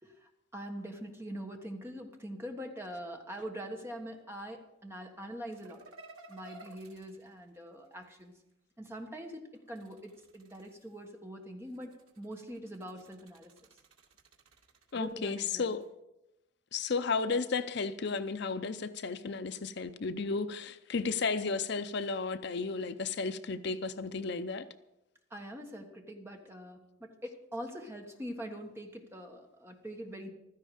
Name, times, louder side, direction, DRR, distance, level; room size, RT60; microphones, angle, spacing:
voice 1, 0.0-5.8 6.3-8.3 8.8-13.5 14.9-15.7 25.3-30.3, equal, 10° right, 3 dB, 1.5 m, -43 dB
sound 1, 5.5-8.3 9.5-11.1 11.6-15.9, right 2 dB, 90° right, 2.2 m, -57 dB
voice 2, 14.9-15.8 16.7-24.7, left 4 dB, 55° left, 12 dB, 0.5 m, -33 dB
15.5 x 13.0 x 5.0 m, 0.93 s
head